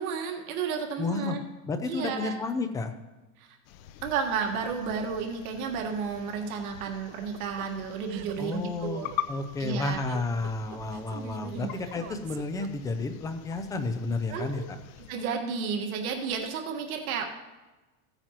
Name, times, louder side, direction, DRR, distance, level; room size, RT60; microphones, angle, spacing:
voice 1, 0.0-1.4 1.9-2.4 3.4-3.5 4.0-9.1 9.6-10.0 11.4-11.8 14.3-14.5 15.1-17.2, right 6 dB, 85° right, 2 dB, 1.6 m, -32 dB
voice 2, 1.0-1.4 1.7-2.9 8.4-14.8, left 3 dB, 10° left, 8 dB, 0.3 m, -31 dB
sound 1, 3.6-15.2, left 11 dB, 80° left, 0.8 m, -44 dB
sound 2, 6.9-13.1, right 10 dB, 50° right, 0.7 m, -44 dB
16.0 x 8.9 x 2.9 m, 1.1 s
supercardioid pair, 150°, 41 cm